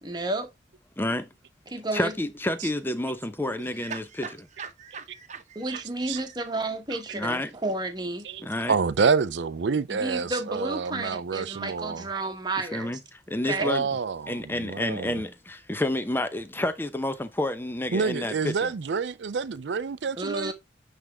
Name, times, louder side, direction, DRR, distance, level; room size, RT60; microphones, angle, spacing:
voice 1, 0.0-0.5 1.7-2.2 5.5-8.3 9.9-12.9 13.4-13.7 20.2-20.5, right 2 dB, 25° right, 1.3 m, -31 dB
voice 2, 1.0-1.3 1.9-4.3 7.1-7.5 8.4-8.8 12.7-13.0 13.3-13.9 14.3-18.7, left 1 dB, 10° left, 0.7 m, -29 dB
voice 3, 3.6-5.8 6.1-6.2, right 6 dB, 45° right, 1.0 m, -41 dB
voice 4, 5.7-6.2 6.9-7.0 8.2-12.0 13.6-15.2 17.9-20.5, right 5 dB, 80° right, 0.5 m, -28 dB
9.3 x 3.5 x 3.5 m
head